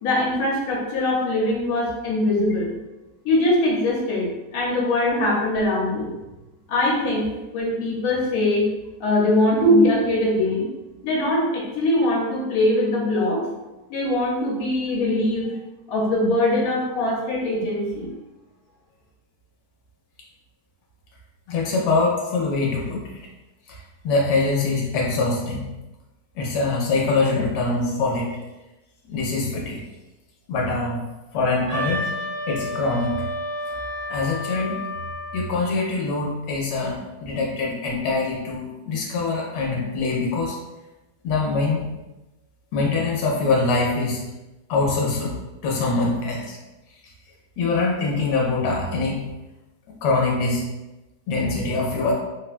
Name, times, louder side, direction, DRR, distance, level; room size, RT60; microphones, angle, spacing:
voice 1, 0.0-2.7 3.2-6.1 6.7-8.7 9.0-10.7 11.0-13.4 13.9-15.5 15.9-18.1, left 1 dB, 65° left, -3 dB, 1.2 m, -22 dB
voice 2, 21.5-23.0 23.7-23.8 24.0-25.7 26.4-28.3 29.1-29.8 30.5-31.0 31.3-32.1 32.5-33.3 34.1-34.8 35.3-40.6 41.2-41.8 42.7-44.3 44.7-45.4 45.6-46.6 47.6-49.2 50.0-50.7 51.3-52.1, left 3 dB, 85° left, -2 dB, 1.2 m, -23 dB
Wind instrument woodwind instrument, 31.7-35.5, left 1 dB, 65° right, 0.7 m, -30 dB
3.3 x 2.1 x 2.4 m, 1.0 s
omnidirectional pair, 1.8 m